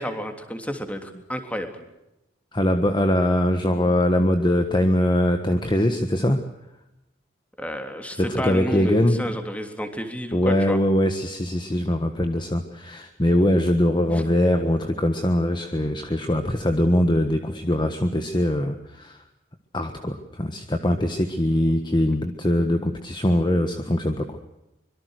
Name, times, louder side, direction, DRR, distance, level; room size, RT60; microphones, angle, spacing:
voice 1, 0.0-1.7 7.6-10.8 14.1-14.2, equal, 5° left, 6 dB, 3.2 m, -30 dB
voice 2, 2.5-6.4 8.2-9.3 10.3-19.2 19.7-24.4, left 1 dB, 25° left, 6 dB, 1.5 m, -22 dB
25.0 x 23.0 x 6.5 m, 0.91 s
head